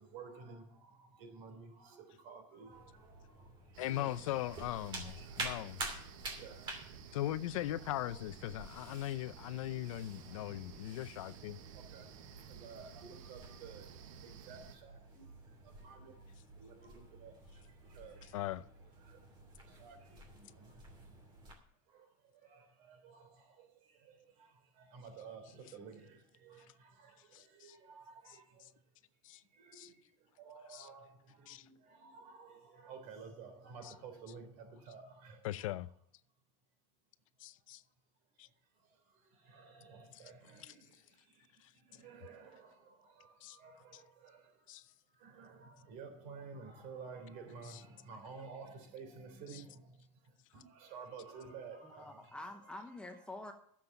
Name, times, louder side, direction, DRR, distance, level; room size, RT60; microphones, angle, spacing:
voice 1, 0.0-4.2 4.9-6.0 6.4-7.2 7.8-8.2 10.1-11.0 11.7-12.1 12.4-16.3 16.6-18.4 19.0-19.3 19.6-21.1 21.9-28.8 29.3-35.7 38.8-44.8 45.1-52.4, right 5 dB, 50° right, 3.5 m, -54 dB
sound 1, 2.7-21.5, right 2 dB, 25° right, 2.8 m, -50 dB
sound 2, 3.7-14.8, right 8 dB, 80° right, 1.3 m, -54 dB
voice 2, 3.8-5.8 7.1-11.6 18.3-18.6 27.3-27.8 28.3-28.7 29.2-29.4 29.7-29.9 30.7-30.9 31.5-31.7 33.8-33.9 35.4-35.9 37.4-37.8 38.4-38.5 40.1-40.2 40.6-40.7 41.6-41.7 43.4-43.6 43.9-44.0 44.7-44.8 47.7-47.8 49.5-49.6, left 14 dB, 85° left, 0.6 m, -40 dB
voice 3, 51.8-53.5, left 2 dB, 5° left, 0.9 m, -47 dB
11.5 x 7.5 x 7.2 m
supercardioid pair, 150°, 17 cm